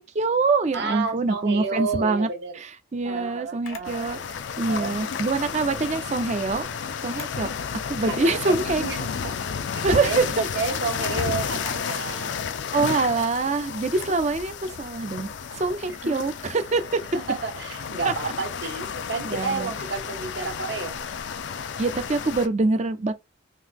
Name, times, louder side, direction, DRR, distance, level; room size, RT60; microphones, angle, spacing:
voice 1, 0.0-2.3 2.9-4.2 4.6-6.7 7.0-7.5 7.9-8.8 9.8-10.5 12.7-17.0 18.0-18.1 19.2-19.7 21.8-23.1, right 3 dB, 35° right, 0.5 m, -24 dB
voice 2, 0.7-2.6 3.0-4.1 4.7-4.9 8.1-9.4 9.9-12.4 15.9-16.2 17.1-21.0, right 4 dB, 60° right, 1.0 m, -31 dB
Camera, 3.6-4.0 5.7-6.0 7.0-7.4 7.9-8.0 9.1-9.4 11.5-11.8 13.9-14.2, left 6 dB, 90° left, 0.8 m, -44 dB
sound 1, 3.8-22.5, left 6 dB, 65° left, 0.4 m, -32 dB
3.8 x 2.7 x 2.8 m
head